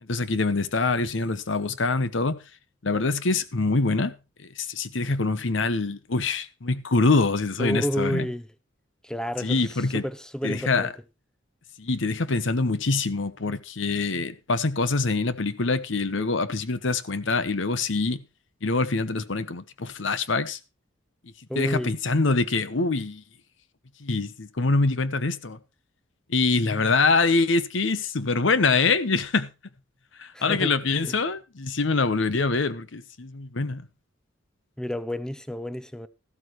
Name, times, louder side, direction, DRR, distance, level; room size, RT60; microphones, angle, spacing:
voice 1, 0.0-2.4 2.8-4.2 4.4-8.3 9.4-10.0 10.4-10.9 11.8-18.2 18.6-20.6 21.6-23.2 24.0-25.6 26.3-29.5 30.2-33.9, left 3 dB, 70° left, 0.9 m, -25 dB
voice 2, 7.6-8.5 9.0-10.9 21.5-22.0 30.3-30.8 31.0-31.2 34.8-36.1, equal, 5° left, 0.5 m, -30 dB
14.0 x 12.5 x 3.1 m
head